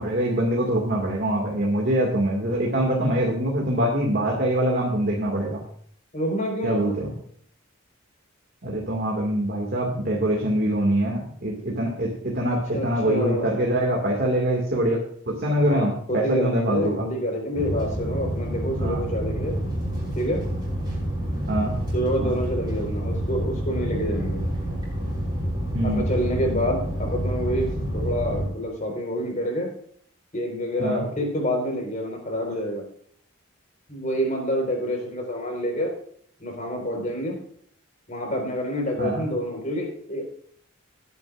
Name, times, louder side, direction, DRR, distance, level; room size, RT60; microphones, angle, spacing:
voice 1, 0.0-5.6 6.6-7.1 8.6-17.1 18.8-19.0 21.5-21.7 22.2-22.4 25.7-26.1 30.8-31.0 39.0-39.2, right 1 dB, 50° right, -2 dB, 2.2 m, -24 dB
voice 2, 6.1-7.2 12.7-13.5 15.7-19.6 20.1-20.4 21.9-24.4 25.8-29.7 30.3-32.8 33.9-35.9 36.4-37.4 38.1-40.3, equal, 40° left, 1 dB, 4.5 m, -28 dB
sound 1, 17.5-28.5, equal, 20° right, 5.4 m, -28 dB
19.5 x 9.4 x 2.5 m, 0.63 s
head